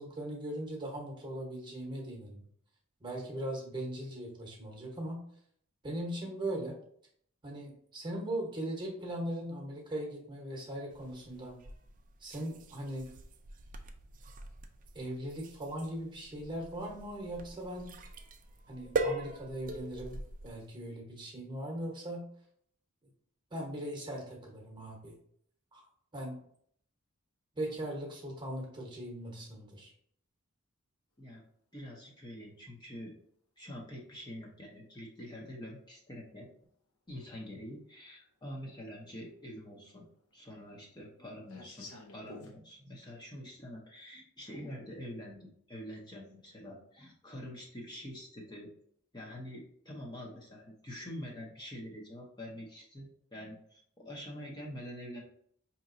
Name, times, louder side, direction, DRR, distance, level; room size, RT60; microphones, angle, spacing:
voice 1, 0.0-2.4 3.0-5.2 5.8-6.8 7.4-11.6 12.2-13.1 14.9-17.9 18.7-20.2 20.4-22.3 23.5-25.1 25.7-25.8 26.1-26.4 27.6-29.9, right 1 dB, 20° right, 0 dB, 1.0 m, -39 dB
sound 1, 10.9-20.7, right 2 dB, 40° right, 0.4 m, -41 dB
voice 2, 31.7-33.1 33.6-36.5 37.1-40.0 40.3-48.7 49.1-55.2, equal, 20° left, -2 dB, 0.7 m, -46 dB
sound 2, 35.9-36.0 37.3-37.4 37.9-38.0 38.3-39.0 39.3-42.5, left 2 dB, 75° left, 0.8 m, -52 dB
5.1 x 2.9 x 2.6 m, 0.64 s
head